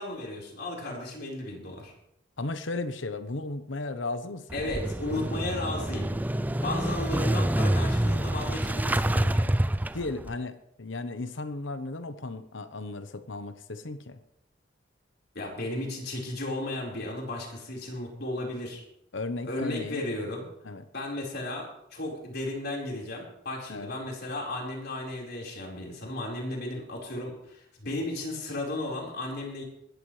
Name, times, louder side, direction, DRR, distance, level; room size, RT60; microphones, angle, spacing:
voice 1, 0.0-1.9 4.5-6.1 6.6-9.5 15.3-18.8 19.4-20.5 20.9-29.6, left 1 dB, 60° left, -2 dB, 4.7 m, -34 dB
voice 2, 2.4-4.8 9.9-14.2 19.1-20.1 20.6-20.8 23.7-23.9, left 2 dB, 75° left, 10 dB, 1.0 m, -35 dB
Motorcycle / Engine starting, 4.5-10.4, right 1 dB, 10° right, 0.4 m, -27 dB
20.5 x 13.0 x 3.3 m, 0.77 s
head